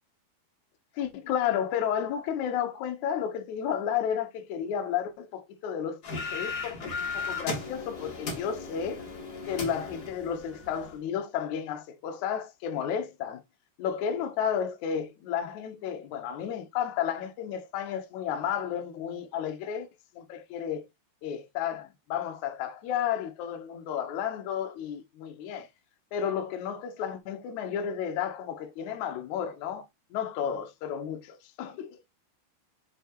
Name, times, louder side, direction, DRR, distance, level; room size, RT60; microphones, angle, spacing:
voice 1, 0.9-9.0 9.5-13.4 13.8-19.9 20.1-20.9 21.2-25.7 26.1-29.8 30.1-32.0, left 8 dB, 80° left, 1.7 m, -32 dB
sound 1, 6.0-10.9, left 4 dB, 60° left, 1.0 m, -36 dB
6.6 x 5.8 x 3.0 m
omnidirectional pair, 4.9 m